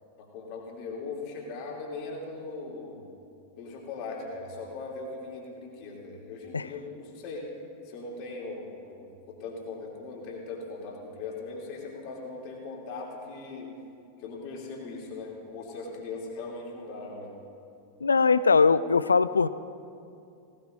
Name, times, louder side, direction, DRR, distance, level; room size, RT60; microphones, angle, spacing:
voice 1, 0.2-3.0 3.6-7.5 7.8-13.7 14.2-17.3, left 3 dB, 45° left, -2 dB, 2.8 m, -39 dB
voice 2, 18.0-19.5, left 4 dB, 75° left, 16 dB, 0.3 m, -21 dB
18.5 x 18.0 x 2.6 m, 2.6 s
figure-of-eight pair, 90°, 0 cm